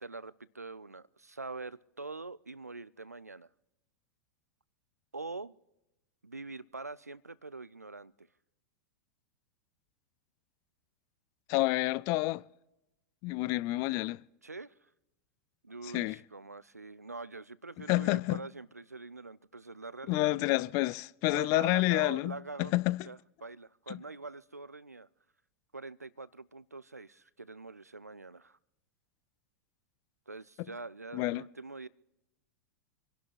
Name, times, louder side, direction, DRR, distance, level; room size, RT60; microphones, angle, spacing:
voice 1, 0.0-3.5 5.1-5.6 6.2-8.3 14.4-14.7 15.6-20.4 21.3-22.7 23.1-25.1 25.7-28.6 30.3-31.9, right 3 dB, 85° right, 0.5 m, -44 dB
voice 2, 11.5-12.4 13.2-14.2 15.9-16.2 17.9-18.4 20.1-23.0 23.9-24.0 31.1-31.4, left 20 dB, 40° left, 0.4 m, -29 dB
27.5 x 11.5 x 3.1 m
figure-of-eight pair, 90°, 8 cm